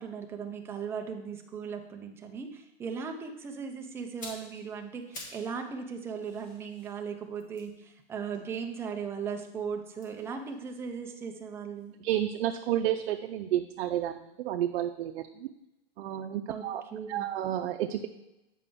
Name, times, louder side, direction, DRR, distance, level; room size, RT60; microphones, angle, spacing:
voice 1, 0.0-12.0 16.5-16.6 16.9-17.3, right 6 dB, 10° right, 4 dB, 0.3 m, -38 dB
sound 1, 4.0-5.5 5.8-9.1 9.9-11.9 12.2-12.4, left 1 dB, 25° left, 1.8 m, -50 dB
voice 2, 12.0-15.5 16.0-16.8 17.1-18.1, right 11 dB, 90° right, 6 dB, 0.5 m, -31 dB
8.4 x 5.0 x 3.5 m, 0.92 s
supercardioid pair, 150°, 30 cm